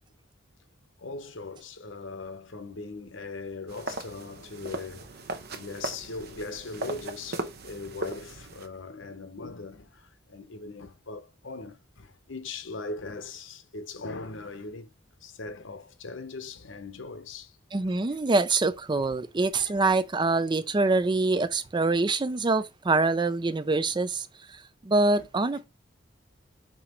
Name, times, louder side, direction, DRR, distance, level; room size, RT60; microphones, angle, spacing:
voice 1, 1.0-5.2 5.5-14.9 15.2-17.5 19.5-19.7 25.2-25.3, left 3 dB, 80° left, 1.0 m, -40 dB
sound 1, 3.7-8.7, right 2 dB, 55° right, 0.9 m, -38 dB
voice 2, 17.7-24.3 24.8-25.7, right 3 dB, 25° right, 0.5 m, -25 dB
5.9 x 3.7 x 4.4 m
head